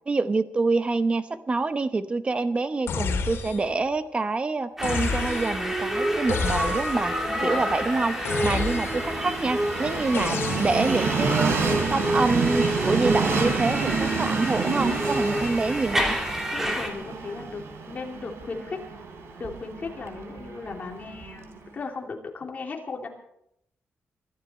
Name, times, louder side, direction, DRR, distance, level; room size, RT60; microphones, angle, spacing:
voice 1, 0.1-7.2 7.4-11.6 11.9-16.2, right 3 dB, 25° right, 11 dB, 0.9 m, -26 dB
sound 1, 2.9-3.8 4.8-5.7 6.3-7.2 8.3-9.2 10.1-11.1, left 5 dB, 90° left, 2.7 m, -30 dB
sound 2, 4.8-16.9, equal, 10° right, 2.9 m, -28 dB
Train, 5.5-21.6, right 5 dB, 90° right, 3.5 m, -30 dB
voice 2, 7.2-7.6 8.4-8.7 16.5-18.8 19.4-23.1, left 4 dB, 40° left, 1 dB, 3.0 m, -36 dB
23.5 x 13.0 x 4.4 m, 0.77 s
wide cardioid pair, 145°, 4 cm